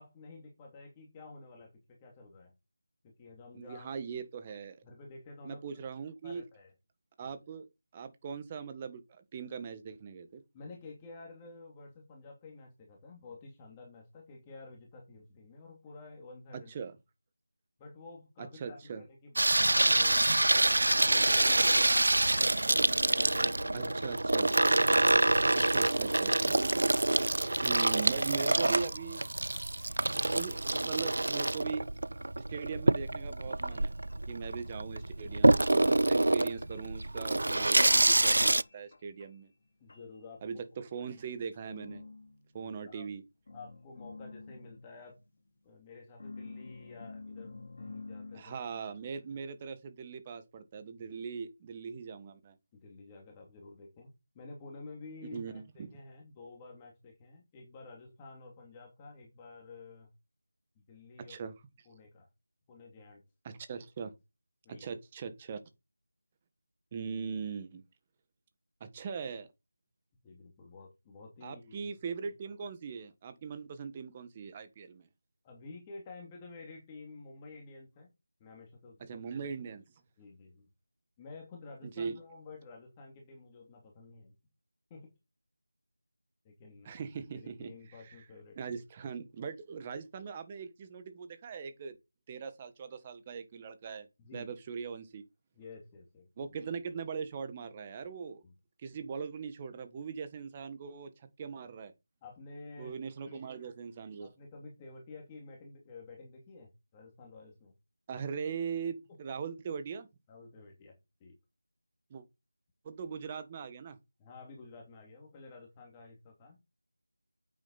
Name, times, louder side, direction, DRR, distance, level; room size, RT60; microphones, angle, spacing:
voice 1, 0.0-2.5 3.0-3.9 4.8-5.6 6.2-6.7 7.2-7.3 10.5-16.7 17.8-22.7 23.0-23.9 39.8-40.6 42.5-43.0 43.5-45.2 45.6-48.6 51.1-51.2 52.7-60.1 60.9-61.5 61.9-62.3 62.7-63.2 64.6-64.9 70.2-71.9 75.4-78.1 78.4-79.1 80.2-80.7 81.2-84.3 84.9-85.1 86.4-87.0 87.3-88.7 94.2-94.5 95.5-96.5 98.4-98.5 102.2-102.9 103.3-103.7 104.2-107.7 109.1-109.2 110.3-111.4 114.2-116.6, left 3 dB, 15° left, 2.7 m, -51 dB
voice 2, 3.5-4.8 5.4-6.4 7.2-7.7 7.9-10.4 16.7-16.9 18.4-19.0 23.7-24.5 25.5-29.3 30.3-31.9 32.4-33.9 34.3-39.5 40.4-42.0 42.5-43.2 48.3-52.6 55.3-55.9 61.3-61.5 63.4-64.1 64.7-65.6 66.9-67.8 68.8-69.5 71.4-75.1 79.1-79.8 81.8-82.2 86.8-88.2 88.6-92.0 92.3-94.1 94.3-95.2 96.4-98.4 98.8-101.1 101.4-101.9 102.8-104.3 108.1-110.1 112.1-112.2 112.8-114.0, right 6 dB, 15° right, 1.5 m, -40 dB
Water tap faucet / Sink (filling or washing), 19.4-38.6, right 2 dB, 70° right, 0.7 m, -26 dB
sound 1, 33.7-34.2 34.6-35.1 35.6-36.1 36.4-37.0 37.3-39.6 39.9-40.2 41.1-43.2 43.5-45.6 46.2-48.4, left 3 dB, 40° left, 3.3 m, -50 dB
9.0 x 9.0 x 4.2 m
figure-of-eight pair, 170°, 0 cm